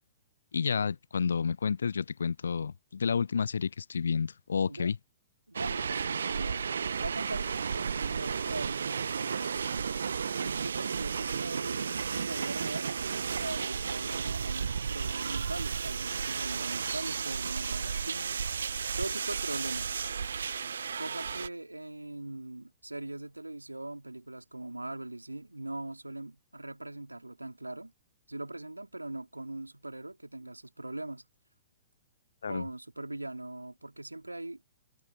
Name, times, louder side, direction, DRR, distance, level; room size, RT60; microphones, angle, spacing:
voice 1, 0.5-5.0 32.4-32.6, left 6 dB, 65° left, 0.6 m, -30 dB
sound 1, 5.5-21.5, right 6 dB, 65° right, 0.8 m, -33 dB
voice 2, 5.5-6.6 7.0-9.9 10.4-12.9 13.4-18.4 19.0-19.9 21.0-27.9 28.3-31.3 32.5-34.6, right 2 dB, 85° right, 3.6 m, -41 dB
figure-of-eight pair, 110°, 0 cm